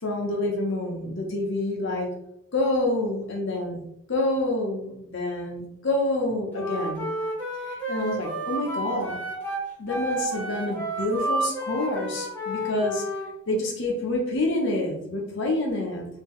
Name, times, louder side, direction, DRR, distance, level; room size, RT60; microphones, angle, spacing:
voice 1, 0.0-2.1 2.5-3.8 4.1-7.0 7.6-9.2 9.8-13.0 13.5-16.1, left 2 dB, 65° left, 0 dB, 0.8 m, -27 dB
Wind instrument woodwind instrument, 6.5-13.3, right 1 dB, 10° left, 1.1 m, -31 dB
3.6 x 2.7 x 3.1 m, 0.79 s
head